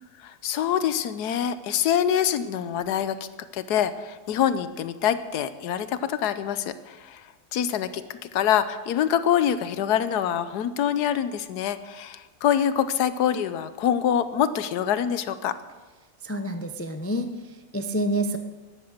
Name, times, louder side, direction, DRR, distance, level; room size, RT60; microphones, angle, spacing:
voice 1, 0.2-3.2 3.5-7.2 7.5-15.6, left 9 dB, 90° left, 13 dB, 1.3 m, -25 dB
voice 2, 16.2-18.4, right 1 dB, 15° left, 7 dB, 0.4 m, -28 dB
14.5 x 12.0 x 6.6 m, 1.3 s
omnidirectional pair, 1.7 m